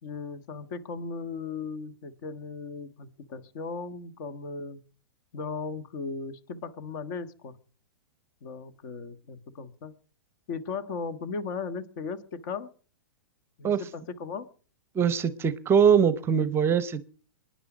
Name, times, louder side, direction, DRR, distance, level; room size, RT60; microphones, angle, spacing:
voice 1, 0.0-4.8 5.3-7.6 8.4-9.9 10.5-12.7 13.6-14.5, left 4 dB, 50° left, 12 dB, 1.6 m, -37 dB
voice 2, 14.9-17.0, right 7 dB, 20° right, 17 dB, 0.7 m, -22 dB
23.5 x 10.0 x 5.1 m, 0.43 s
hypercardioid pair, 130°, 12 cm